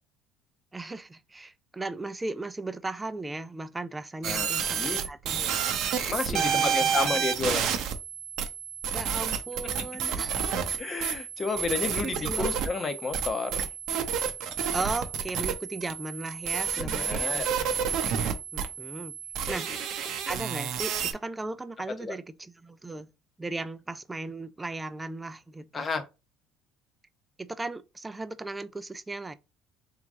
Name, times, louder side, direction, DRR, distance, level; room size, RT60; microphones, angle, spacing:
voice 1, 0.7-5.6 6.1-7.2 8.9-10.7 11.6-11.7 12.0-12.7 14.7-17.7 18.0-19.2 19.5-23.1 23.4-25.9 27.4-29.3, right 2 dB, 15° right, 0.5 m, -37 dB
voice 2, 4.2-5.0 6.1-7.7 10.8-13.7 16.8-17.5 19.4-19.8 22.0-22.2 25.7-26.0, left 4 dB, 35° left, 0.9 m, -31 dB
sound 1, 4.2-21.1, right 8 dB, 65° right, 0.8 m, -30 dB
3.6 x 3.0 x 3.6 m
supercardioid pair, 85°, 0 cm